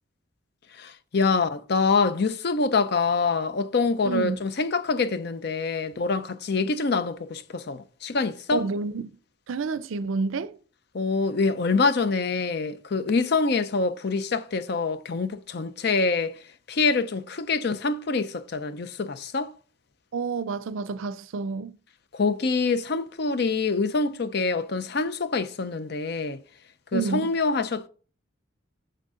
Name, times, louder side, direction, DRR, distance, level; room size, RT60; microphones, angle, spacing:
voice 1, 0.7-8.6 10.9-16.4 16.7-19.5 22.1-26.4 26.9-27.9, left 4 dB, 55° left, 0.5 m, -25 dB
voice 2, 4.0-4.4 8.5-9.1 9.5-10.6 20.1-21.8 26.9-27.3, right 4 dB, 80° right, 0.5 m, -29 dB
6.6 x 6.3 x 3.7 m
head